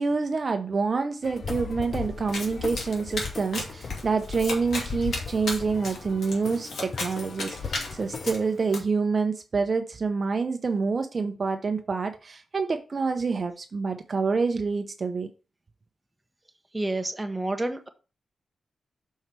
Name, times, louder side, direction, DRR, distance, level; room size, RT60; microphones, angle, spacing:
voice 1, 0.0-15.3, right 4 dB, 45° right, 0.7 m, -27 dB
sound 1, 1.2-8.4, left 5 dB, 50° left, 0.6 m, -37 dB
Domestic sounds home sounds, 2.3-8.8, left 2 dB, 85° left, 2.5 m, -36 dB
voice 2, 16.7-17.9, right 2 dB, 10° right, 0.9 m, -29 dB
5.6 x 4.6 x 6.0 m
wide cardioid pair, 125°, 0 cm